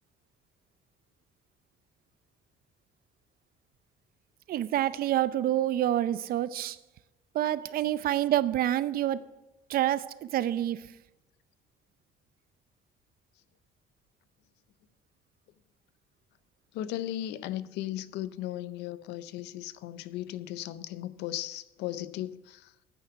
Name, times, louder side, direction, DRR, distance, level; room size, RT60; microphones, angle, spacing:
voice 1, 4.5-6.8 7.3-9.2 9.7-10.9, right 12 dB, 60° right, 0.6 m, -27 dB
voice 2, 16.7-22.7, left 13 dB, 85° left, 0.6 m, -36 dB
9.4 x 9.4 x 5.7 m
cardioid pair, 110°, 17 cm